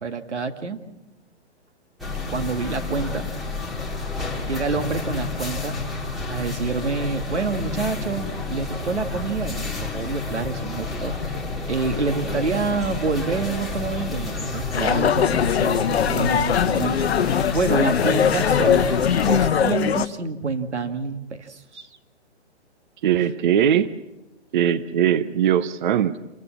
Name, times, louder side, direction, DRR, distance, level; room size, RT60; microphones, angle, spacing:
voice 1, 0.0-0.8 2.3-3.3 4.5-5.7 6.3-11.1 11.7-21.9, right 4 dB, 85° right, 7 dB, 2.1 m, -27 dB
sound 1, 2.0-19.5, left 3 dB, ahead, 2.4 m, -30 dB
sound 2, 14.7-20.1, left 8 dB, 65° left, 0.9 m, -21 dB
voice 2, 23.0-23.9 24.5-26.2, right 9 dB, 45° right, 14 dB, 0.8 m, -20 dB
27.5 x 16.0 x 7.2 m, 1.0 s
hypercardioid pair, 135°, 34 cm